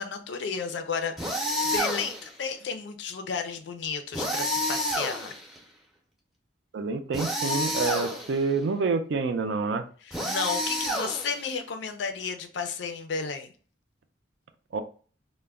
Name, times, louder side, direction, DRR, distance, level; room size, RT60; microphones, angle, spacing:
voice 1, 0.0-5.3 10.1-13.5, left 5 dB, 70° left, 7 dB, 0.4 m, -33 dB
sound 1, 1.2-2.3 4.1-5.6 7.1-8.4 10.1-11.5, equal, ahead, 0.5 m, -29 dB
voice 2, 6.7-9.9 14.7-14.8, right 4 dB, 70° right, 8 dB, 0.4 m, -27 dB
2.2 x 2.1 x 3.4 m, 0.41 s
head